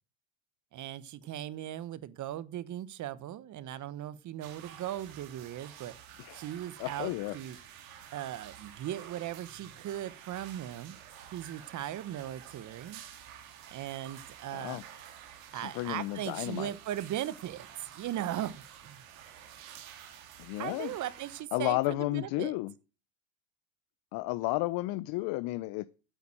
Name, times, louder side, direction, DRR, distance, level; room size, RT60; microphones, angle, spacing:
voice 1, 0.7-5.9 6.3-7.6 8.1-11.0 11.3-13.0 13.4-14.8 15.5-17.7 17.9-19.0 20.6-22.5, right 12 dB, 45° right, 1.2 m, -38 dB
sound 1, 4.4-21.4, right 9 dB, 80° right, 2.9 m, -50 dB
voice 2, 6.8-7.4 14.5-14.8 15.5-16.7 20.4-20.9 21.5-22.7 24.1-25.9, left 19 dB, 60° left, 0.8 m, -32 dB
9.4 x 8.0 x 8.9 m
supercardioid pair, 90°, 41 cm